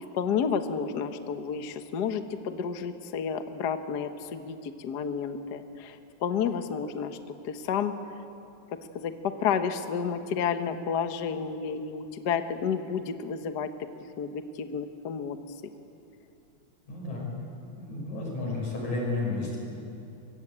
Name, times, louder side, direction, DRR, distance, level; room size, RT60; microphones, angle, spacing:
voice 1, 0.0-7.2 7.4-7.9 8.9-13.7 14.2-15.4, left 6 dB, 60° left, 8 dB, 1.1 m, -31 dB
voice 2, 16.9-17.3 17.8-19.6, left 2 dB, 80° left, -1 dB, 7.5 m, -32 dB
24.5 x 22.5 x 8.7 m, 2.8 s
omnidirectional pair, 3.3 m